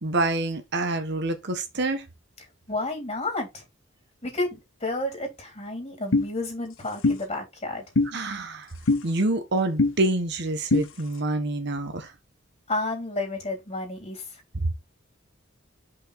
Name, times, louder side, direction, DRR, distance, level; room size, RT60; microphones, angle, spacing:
voice 1, 0.0-2.1 8.1-8.7 9.0-12.1, right 2 dB, 55° right, 1.2 m, -27 dB
voice 2, 2.7-3.6 4.2-7.8 12.7-14.4, left 2 dB, 30° left, 3.2 m, -31 dB
sound 1, 6.1-6.3 7.0-7.2 8.0-8.1 8.9-9.0 9.8-9.9 10.7-10.9, left 3 dB, 75° left, 0.9 m, -20 dB
5.5 x 4.1 x 5.0 m
head